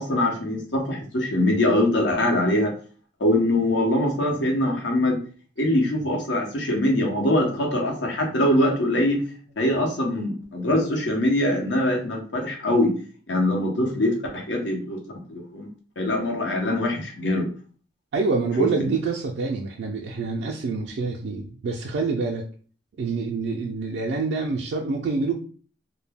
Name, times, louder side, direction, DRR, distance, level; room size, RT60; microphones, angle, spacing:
voice 1, 0.0-2.7 3.2-5.2 5.6-9.2 9.6-12.9 13.3-15.0 15.3-15.7 16.0-17.5 18.6-18.9, left 1 dB, 80° left, 1 dB, 0.8 m, -23 dB
voice 2, 18.1-22.5 23.0-25.3, right 4 dB, 70° right, 0 dB, 0.3 m, -26 dB
2.2 x 2.1 x 3.3 m, 0.41 s
head